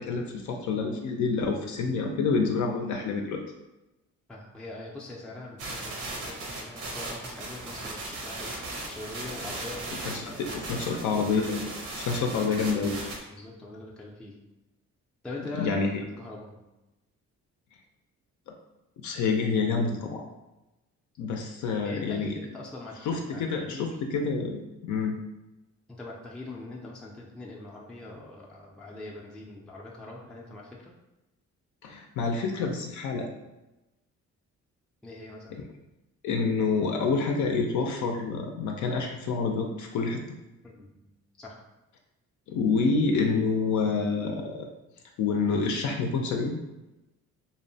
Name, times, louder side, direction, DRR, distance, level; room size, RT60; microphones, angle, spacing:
voice 1, 0.0-3.4 10.0-13.0 15.5-16.0 19.0-20.2 21.2-22.3 23.0-25.1 31.8-33.3 36.2-40.2 42.5-44.7 45.2-46.6, left 4 dB, 70° left, 2 dB, 0.5 m, -28 dB
voice 2, 4.3-8.6 8.9-10.8 13.3-14.4 15.2-15.7 16.2-16.7 21.8-24.0 25.9-30.9 35.0-35.6 40.6-41.6, left 2 dB, 5° left, -4 dB, 0.4 m, -42 dB
sound 1, 5.6-13.2, right 2 dB, 80° right, 0.7 m, -37 dB
2.7 x 2.1 x 2.6 m, 1.0 s
cardioid pair, 90°, 30 cm